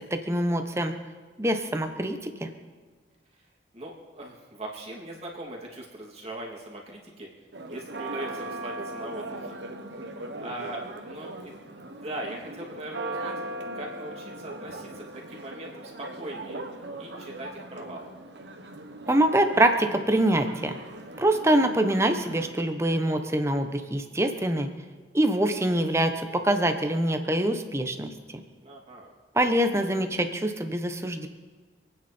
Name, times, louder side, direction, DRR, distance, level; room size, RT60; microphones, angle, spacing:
voice 1, 0.1-0.9 1.4-2.5 19.1-20.8 21.2-24.7 25.1-28.1 29.3-31.3, right 1 dB, 15° right, 6 dB, 1.1 m, -24 dB
voice 2, 3.7-7.3 7.7-9.4 10.0-10.1 10.4-13.4 13.7-16.6 17.0-18.1 28.6-29.1, right 1 dB, 35° right, -2 dB, 3.1 m, -40 dB
Church bell, 7.5-22.5, right 2 dB, 75° right, 1.4 m, -39 dB
27.0 x 9.5 x 4.4 m, 1.5 s
head